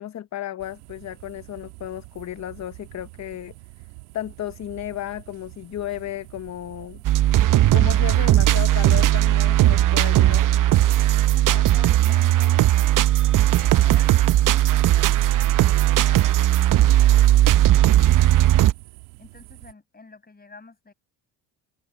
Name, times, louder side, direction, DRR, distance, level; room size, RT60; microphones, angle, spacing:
voice 1, 0.0-3.5 4.1-7.0 7.7-10.5, left 12 dB, 40° left, 0.8 m, -33 dB
sound 1, 0.6-19.7, right 24 dB, 90° right, 1.9 m, -46 dB
sound 2, 7.0-18.7, right 13 dB, 45° right, 0.7 m, -17 dB
voice 2, 11.2-12.7 13.2-14.1 14.4-18.8 19.2-20.9, left 3 dB, 20° left, 5.8 m, -48 dB
supercardioid pair, 80°, 43 cm